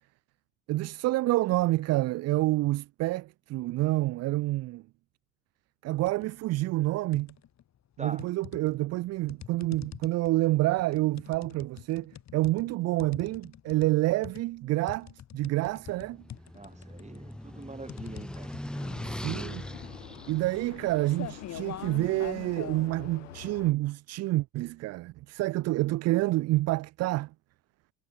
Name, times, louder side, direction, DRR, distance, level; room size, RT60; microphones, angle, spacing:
voice 1, 0.7-4.8 5.8-7.3 8.0-16.2 19.1-19.6 20.3-27.3, right 18 dB, 45° right, 0.5 m, -28 dB
sound 1, 5.9-6.3 6.7-7.6 8.2-22.9, left 10 dB, 45° left, 5.2 m, -45 dB
sound 2, 15.8-22.0, left 1 dB, ahead, 1.1 m, -40 dB
voice 2, 16.5-18.6, right 3 dB, 20° right, 7.6 m, -43 dB
Vehicle, 18.7-23.7, left 12 dB, 85° left, 0.9 m, -47 dB
hypercardioid pair, 60°, 37 cm